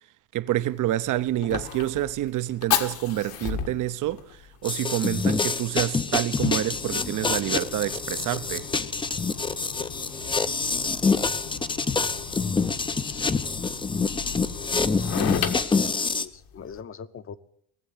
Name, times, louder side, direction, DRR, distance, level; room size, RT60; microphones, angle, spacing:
voice 1, 0.3-8.7, right 14 dB, 55° right, 0.7 m, -28 dB
Fire, 0.6-16.8, left 9 dB, 70° left, 1.7 m, -35 dB
sound 1, 4.6-16.2, left 4 dB, 15° left, 0.5 m, -26 dB
voice 2, 12.9-13.9 14.6-17.4, left 7 dB, 35° left, 0.9 m, -42 dB
18.0 x 7.7 x 10.0 m
cardioid pair, 140°, 37 cm